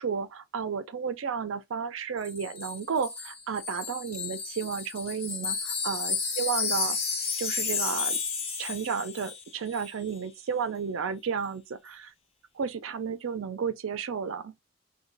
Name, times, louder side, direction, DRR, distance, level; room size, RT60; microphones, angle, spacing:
voice 1, 0.0-7.0 7.4-8.2 8.6-12.1 12.6-14.5, right 6 dB, 75° right, 0.4 m, -32 dB
Wind chime, 2.2-9.5 9.7-9.9, left 5 dB, 30° left, 0.6 m, -32 dB
3.0 x 2.2 x 3.8 m
head